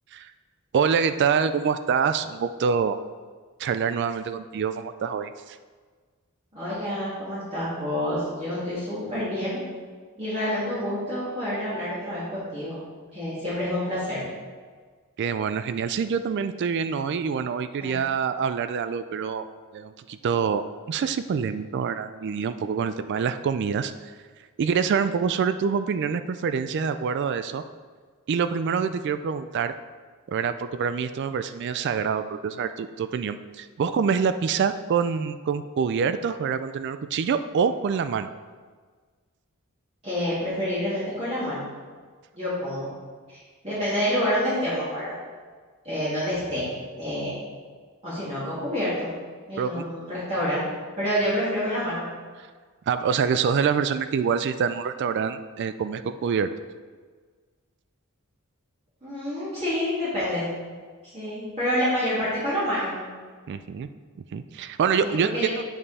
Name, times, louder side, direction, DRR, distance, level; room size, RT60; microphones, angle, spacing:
voice 1, 0.7-3.0 3.6-5.6 15.2-19.5 19.7-24.1 24.6-27.6 28.3-29.7 30.3-38.3 49.6-49.8 52.9-56.5 63.5-63.9 64.3-65.6, right 6 dB, 55° right, 11 dB, 0.3 m, -26 dB
voice 2, 6.5-9.6 10.2-12.8 13.1-14.2 17.8-17.9 40.0-41.6 42.3-42.9 43.3-43.4 43.6-45.1 45.8-46.7 47.0-47.4 48.0-49.1 49.5-50.7 51.0-52.1 59.0-60.5 61.1-62.9 65.0-65.5, equal, 30° right, -12 dB, 2.5 m, -28 dB
9.0 x 5.4 x 4.1 m, 1.5 s
head